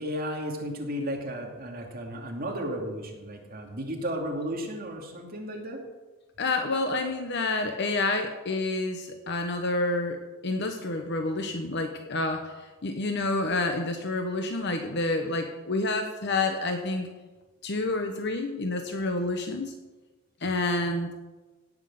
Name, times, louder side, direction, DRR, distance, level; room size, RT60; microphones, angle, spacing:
voice 1, 0.0-5.8, equal, 45° right, 0 dB, 2.6 m, -34 dB
voice 2, 6.4-17.1 17.6-19.7 20.4-21.1, left 2 dB, 55° left, 5 dB, 1.0 m, -29 dB
17.0 x 6.3 x 7.7 m, 1.2 s
head